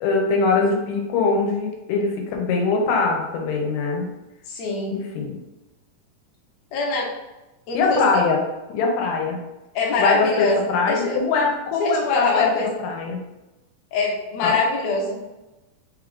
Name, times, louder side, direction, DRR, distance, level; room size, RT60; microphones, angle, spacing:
voice 1, 0.0-4.1 4.9-5.4 7.7-8.4 8.7-9.4 10.0-12.5 12.8-13.2 14.4-14.5, left 4 dB, 85° left, 1 dB, 2.3 m, -22 dB
voice 2, 4.5-5.0 6.7-7.1 7.7-8.2 9.8-10.6 10.9-11.2 11.8-12.7 13.9-15.3, left 3 dB, 65° left, -2 dB, 1.8 m, -23 dB
5.0 x 2.4 x 3.6 m, 1.0 s
omnidirectional pair, 3.8 m